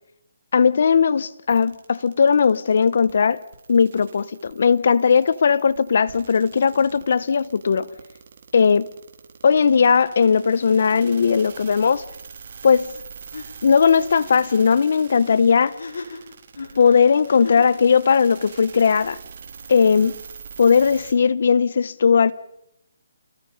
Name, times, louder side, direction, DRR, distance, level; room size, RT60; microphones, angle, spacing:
voice 1, 0.5-3.4 3.7-7.9 8.5-8.9 9.4-12.0 12.6-12.9 13.6-15.8 16.8-19.2 19.7-20.1 20.6-22.3, left 6 dB, 55° left, 0.9 m, -18 dB
sound 1, 1.5-21.1, right 6 dB, 45° right, 3.7 m, -44 dB
sound 2, 12.9-13.1 13.3-13.5 15.6-17.8, left 3 dB, 75° left, 5.5 m, -36 dB
29.0 x 21.0 x 5.4 m
hypercardioid pair, 165°, 0 cm